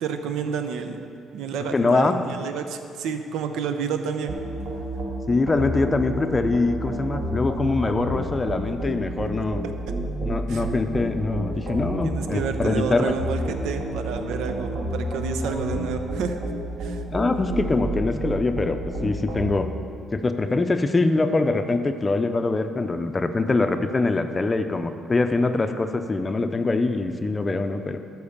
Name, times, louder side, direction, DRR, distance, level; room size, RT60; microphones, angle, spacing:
voice 1, 0.0-1.0 1.3-4.4 10.5-10.6 12.0-16.4 16.8-17.0, right 6 dB, 85° right, 7 dB, 0.7 m, -29 dB
voice 2, 1.7-2.2 5.3-9.6 10.2-13.1 17.1-19.7 20.1-28.0, left 3 dB, 20° left, 8 dB, 0.5 m, -23 dB
sound 1, 4.3-19.5, right 1 dB, 60° right, 1.9 m, -30 dB
11.5 x 4.6 x 7.2 m, 2.6 s
cardioid pair, 115°, 0 cm